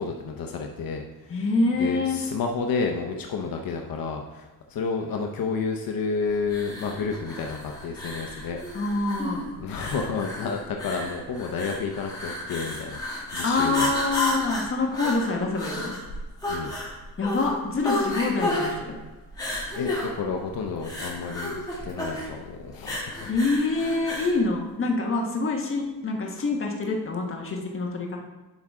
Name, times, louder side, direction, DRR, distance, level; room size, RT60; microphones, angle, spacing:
voice 1, 0.0-1.4 1.8-8.6 9.6-13.9 16.5-16.7 19.8-23.3, left 5 dB, 70° left, 2 dB, 0.8 m, -30 dB
voice 2, 1.3-2.2 8.7-9.4 13.4-15.9 17.2-19.0 23.3-28.2, left 3 dB, 35° left, 0 dB, 1.4 m, -26 dB
sound 1, 6.5-24.4, left 1 dB, 10° left, 2.3 m, -32 dB
11.5 x 4.9 x 3.6 m, 1.2 s
wide cardioid pair, 140°, 36 cm